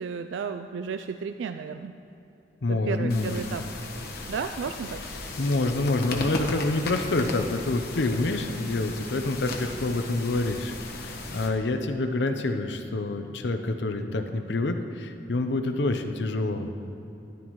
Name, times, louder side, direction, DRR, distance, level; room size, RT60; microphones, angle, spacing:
voice 1, 0.0-1.9 2.7-3.6 4.3-5.0, right 6 dB, 90° right, 8 dB, 0.3 m, -33 dB
voice 2, 2.6-3.6 5.4-16.7, left 2 dB, 70° left, 7 dB, 0.7 m, -27 dB
sound 1, 3.1-11.5, left 2 dB, 55° left, 1.1 m, -37 dB
13.5 x 11.0 x 3.1 m, 2.9 s
head